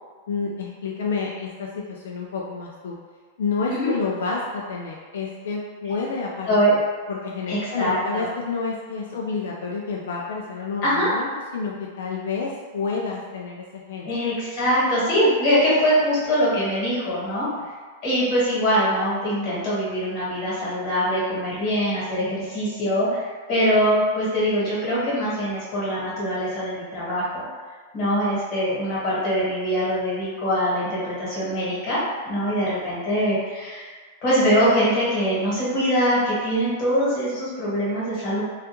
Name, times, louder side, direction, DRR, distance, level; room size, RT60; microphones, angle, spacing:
voice 1, 0.3-3.0 3.4-6.6 7.1-14.3, left 4 dB, 90° left, -2 dB, 0.3 m, -29 dB
voice 2, 7.5-8.3 10.8-11.1 14.0-17.5 18.0-27.4 27.9-33.9 34.2-38.4, equal, 40° left, -8 dB, 1.3 m, -23 dB
2.3 x 2.2 x 2.9 m, 1.5 s
supercardioid pair, 155°, 0 cm